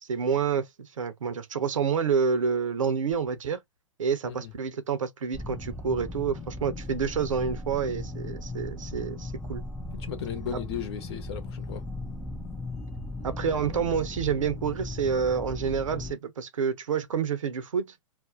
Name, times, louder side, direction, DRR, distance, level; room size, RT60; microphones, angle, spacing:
voice 1, 0.0-3.6 4.0-9.6 10.5-10.6 13.2-17.9, right 6 dB, 70° right, 0.7 m, -28 dB
sound 1, 5.3-16.1, left 2 dB, 5° left, 0.4 m, -37 dB
voice 2, 10.0-11.8, left 9 dB, 50° left, 0.9 m, -36 dB
2.5 x 2.1 x 3.7 m
figure-of-eight pair, 105°, 17 cm